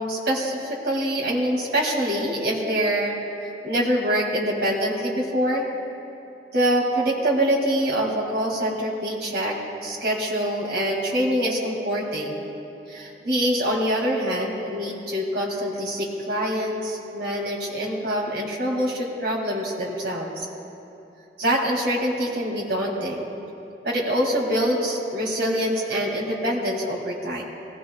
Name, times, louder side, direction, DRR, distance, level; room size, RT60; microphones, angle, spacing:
voice 1, 0.0-5.6 6.5-12.5 12.9-20.5 21.4-23.2 23.8-27.4, equal, 75° right, -3 dB, 2.3 m, -25 dB
20.0 x 17.0 x 2.3 m, 2.9 s
head